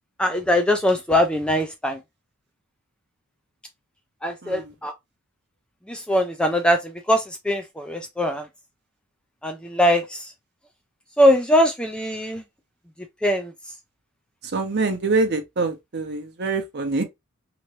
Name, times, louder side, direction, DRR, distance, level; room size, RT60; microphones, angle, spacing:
voice 1, 0.2-2.0 4.2-4.9 5.9-6.8 7.1-8.4 9.4-10.2 11.2-12.4 13.2-13.5, equal, 5° left, 0.3 m, -21 dB
voice 2, 4.4-4.7 14.4-17.0, right 3 dB, 45° right, 0.7 m, -25 dB
3.0 x 2.6 x 3.0 m
head